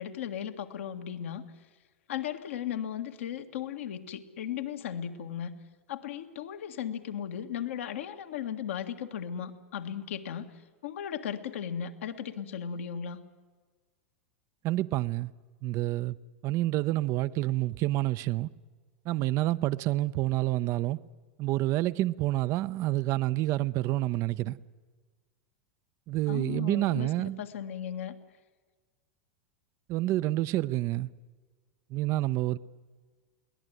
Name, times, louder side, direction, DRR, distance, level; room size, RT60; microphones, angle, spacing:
voice 1, 0.0-1.4 2.1-5.6 5.9-10.5 10.8-13.2 26.3-28.1, left 9 dB, 70° left, 1.8 m, -36 dB
voice 2, 14.6-15.3 15.6-16.2 16.4-18.5 19.1-21.0 21.4-24.6 26.1-27.4 29.9-31.1 31.9-32.6, right 16 dB, 45° right, 0.7 m, -28 dB
22.5 x 18.0 x 9.3 m
hypercardioid pair, 95°, 7 cm